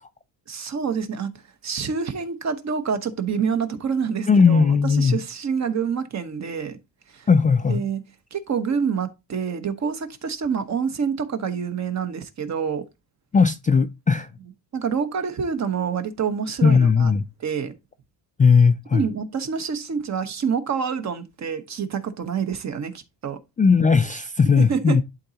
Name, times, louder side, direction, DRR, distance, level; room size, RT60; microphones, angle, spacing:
voice 1, 0.5-1.3 1.6-6.8 7.1-7.3 7.7-8.0 8.3-12.9 14.7-17.1 17.4-17.7 18.9-23.4 24.6-25.0, right 6 dB, 40° right, 1.1 m, -27 dB
voice 2, 4.3-5.2 7.3-7.8 13.3-14.3 16.6-17.2 18.4-19.0 23.6-25.0, left 5 dB, 20° left, 0.3 m, -17 dB
11.5 x 4.0 x 2.8 m
cardioid pair, 135°, 42 cm